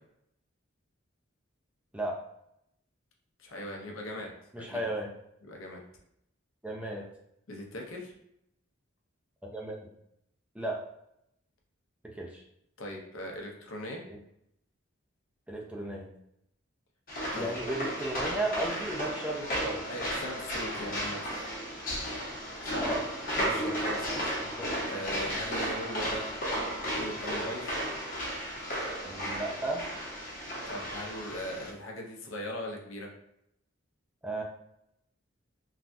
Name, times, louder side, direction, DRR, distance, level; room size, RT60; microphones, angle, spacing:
voice 1, 3.4-4.8 5.5-5.8 7.5-8.1 12.8-14.0 17.3-17.5 19.8-21.3 22.6-22.9 23.4-24.3 24.9-26.3 26.9-27.8 30.7-33.1, left 1 dB, 80° left, 0 dB, 0.7 m, -39 dB
voice 2, 4.5-5.1 6.6-7.1 9.4-9.8 10.5-10.8 12.1-12.4 14.1-14.2 15.5-16.1 17.3-19.8 22.8-23.0 23.6-23.8 24.4-24.7 29.0-29.9 34.2-34.4, right 1 dB, 5° right, -1 dB, 0.4 m, -34 dB
sound 1, 17.1-31.7, equal, 45° left, 0.9 m, -34 dB
3.2 x 2.2 x 2.5 m, 0.76 s
head